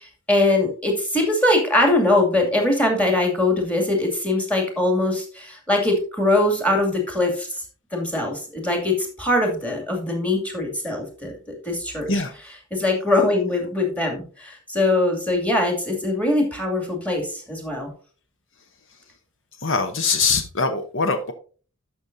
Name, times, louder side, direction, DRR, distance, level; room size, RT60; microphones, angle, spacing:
voice 1, 0.0-7.5 7.9-12.1 12.7-17.9, left 2 dB, 5° left, 1 dB, 2.3 m, -22 dB
voice 2, 19.6-21.3, left 4 dB, 60° left, 8 dB, 0.9 m, -22 dB
12.0 x 6.2 x 2.7 m, 0.39 s
head